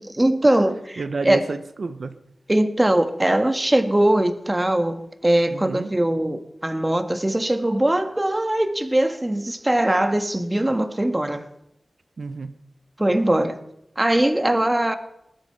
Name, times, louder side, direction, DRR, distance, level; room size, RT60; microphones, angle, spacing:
voice 1, 0.2-1.4 2.5-11.4 13.0-13.6 14.0-15.0, right 1 dB, 20° right, 1.5 m, -21 dB
voice 2, 0.7-2.2 5.5-5.9 12.2-12.6, right 4 dB, 75° right, 0.9 m, -30 dB
20.0 x 12.0 x 5.9 m
wide cardioid pair, 70°, 0 cm